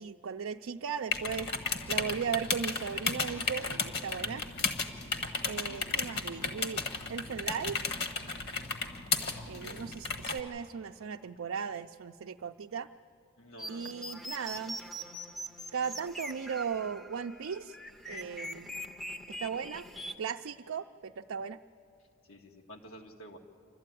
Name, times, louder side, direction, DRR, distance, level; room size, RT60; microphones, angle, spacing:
voice 1, 0.0-4.4 5.4-6.8 7.1-7.8 9.5-12.9 13.7-14.8 15.7-17.8 18.1-18.7 19.4-19.9 20.2-21.6, right 6 dB, 80° right, 4 dB, 0.4 m, -37 dB
sound 1, 1.1-10.4, left 4 dB, 50° left, 1.3 m, -34 dB
voice 2, 4.3-4.7 5.7-6.0 9.3-9.9 13.4-14.0 18.9-19.1 22.3-23.4, equal, 85° left, 2 dB, 1.6 m, -51 dB
sound 2, 13.6-20.1, equal, ahead, 0.6 m, -43 dB
28.0 x 12.5 x 9.2 m, 2.6 s
head